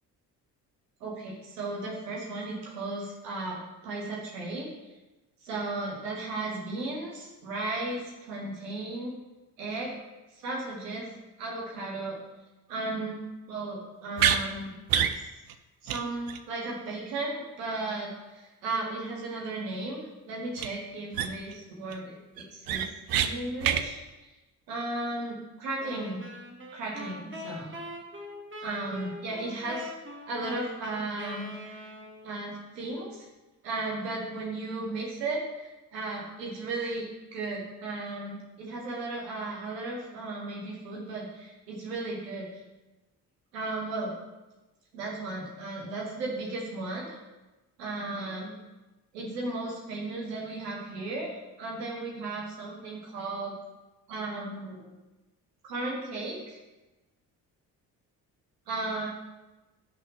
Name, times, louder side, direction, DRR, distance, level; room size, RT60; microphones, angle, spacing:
voice 1, 1.0-4.7 5.4-9.1 9.6-10.0 10.4-11.1 11.4-12.2 12.7-13.2 13.5-14.7 15.8-20.0 20.3-22.2 22.5-22.9 23.2-24.0 24.7-26.2 26.7-27.8 28.6-29.9 30.3-31.8 32.2-33.3 33.6-42.5 43.5-44.1 44.9-47.2 47.8-48.6 49.1-53.5 54.1-54.9 55.6-56.6 58.7-59.1, right 2 dB, 80° right, -3 dB, 2.0 m, -35 dB
sound 1, 14.2-14.4 14.9-15.2 15.5-15.6 15.9-16.0 16.3-16.4 20.6-20.7 21.1-21.5 21.9-22.0 22.4-23.3 23.6-23.8, right 9 dB, 45° right, 0.7 m, -26 dB
sound 2, 25.8-32.4, left 1 dB, 25° right, 1.6 m, -42 dB
7.6 x 6.3 x 5.7 m, 1.1 s
figure-of-eight pair, 40°, 48 cm